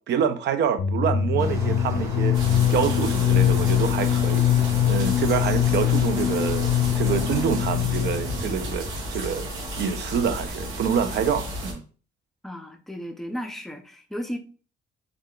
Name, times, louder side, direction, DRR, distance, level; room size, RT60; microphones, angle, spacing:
voice 1, 0.1-2.4 2.7-4.5 4.9-9.5 9.8-11.8, right 7 dB, 60° right, 0.4 m, -26 dB
sound 1, 0.8-8.5, left 10 dB, 65° left, 0.4 m, -23 dB
sound 2, 1.4-7.5, right 1 dB, 15° right, 0.9 m, -37 dB
sound 3, 2.3-11.7, equal, 80° right, 0.8 m, -32 dB
voice 2, 12.4-14.4, equal, ahead, 0.4 m, -34 dB
3.4 x 2.3 x 2.2 m
cardioid pair, 90°, 20 cm